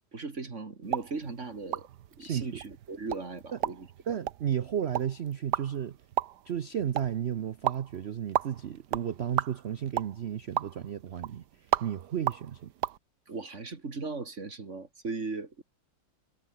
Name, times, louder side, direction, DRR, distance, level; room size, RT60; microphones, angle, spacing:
voice 1, 0.0-1.9 2.2-3.9 13.3-15.6, right 3 dB, 40° right, 2.6 m, -38 dB
sound 1, 0.8-13.0, right 12 dB, 65° right, 1.3 m, -36 dB
voice 2, 2.2-2.6 3.5-3.6 4.1-6.0 6.4-11.4 11.8-12.7, right 9 dB, 85° right, 0.5 m, -33 dB
omnidirectional pair, 2.1 m